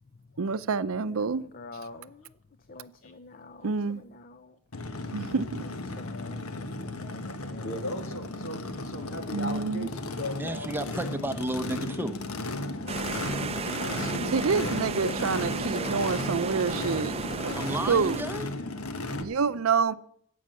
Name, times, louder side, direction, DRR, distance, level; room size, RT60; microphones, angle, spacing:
voice 1, 0.4-1.4 3.6-4.0 5.1-5.7 9.3-9.9 14.3-17.1 17.4-17.6 17.9-18.2 19.2-19.9, right 5 dB, 75° right, 0.6 m, -27 dB
voice 2, 1.0-2.3 2.7-4.6 6.0-7.8 12.8-13.4, left 2 dB, 40° left, 0.6 m, -47 dB
Race car auto racing / Idling / Accelerating revving vroom, 4.7-19.2, left 2 dB, 85° left, 1.2 m, -35 dB
voice 3, 7.6-10.7 11.0-11.1 12.7-12.8 13.8-15.5 15.7-16.0 18.8-19.3, left 1 dB, 65° left, 2.3 m, -39 dB
voice 4, 10.4-12.2 17.5-18.5, right 1 dB, 10° right, 0.8 m, -32 dB
sound 1, 12.9-18.2, right 5 dB, 30° right, 0.5 m, -34 dB
14.5 x 8.6 x 7.6 m
head